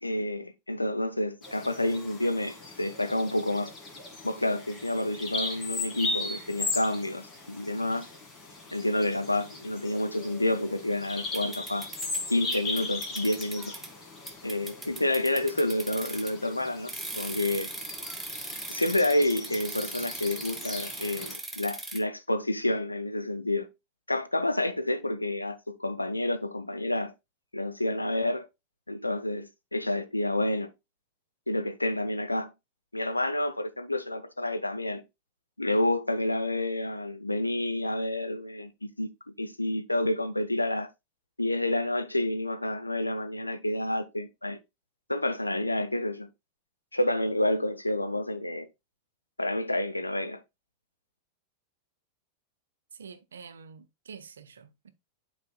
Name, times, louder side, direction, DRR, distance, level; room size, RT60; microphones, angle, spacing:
voice 1, 0.0-3.7 4.2-8.1 8.7-11.9 12.3-13.7 14.4-17.7 18.7-23.7 24.1-27.1 27.5-28.5 28.9-30.7 31.5-32.5 32.9-35.0 35.6-39.1 39.4-40.9 41.4-44.6 45.1-46.3 46.9-48.7 49.4-50.4, left 1 dB, 85° left, 0.7 m, -29 dB
Bird vocalization bird call bird song, 1.4-21.4, left 3 dB, 25° left, 1.9 m, -38 dB
sound 1, 11.3-12.2 12.5-13.9 14.3-16.4 16.9-22.0, right 2 dB, 5° right, 1.0 m, -39 dB
voice 2, 52.9-54.9, right 6 dB, 70° right, 0.6 m, -47 dB
10.0 x 4.2 x 2.3 m
figure-of-eight pair, 90°, 0 cm